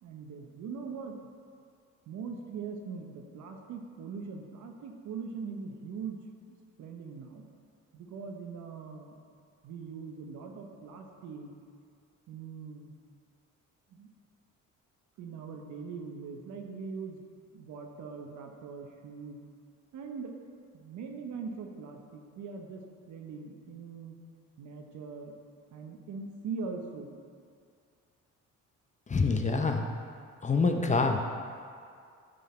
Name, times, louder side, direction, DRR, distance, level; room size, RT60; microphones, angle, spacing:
voice 1, 0.0-1.3 2.1-6.2 6.8-7.4 7.9-9.2 9.6-11.5 12.3-12.9 13.9-14.1 15.2-17.2 17.5-19.4 19.9-20.3 20.7-24.2 24.6-25.3 25.7-27.1, right 5 dB, 75° right, 3 dB, 0.9 m, -41 dB
voice 2, 29.1-29.8 30.4-31.2, left 4 dB, 25° left, 4 dB, 0.6 m, -26 dB
9.5 x 4.0 x 4.3 m, 2.2 s
cardioid pair, 90°, 30 cm